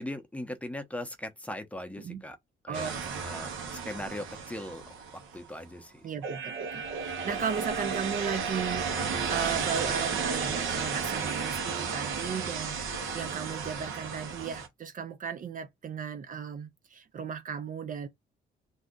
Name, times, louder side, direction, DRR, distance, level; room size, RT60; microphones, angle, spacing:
voice 1, 0.0-2.4 2.6-4.8 5.1-6.0, left 1 dB, 5° left, 0.7 m, -39 dB
voice 2, 2.7-3.2 6.0-18.1, right 7 dB, 45° right, 0.5 m, -36 dB
sound 1, 2.7-5.4 6.2-14.7, right 5 dB, 75° right, 1.1 m, -33 dB
2.7 x 2.3 x 3.6 m
cardioid pair, 90°, 20 cm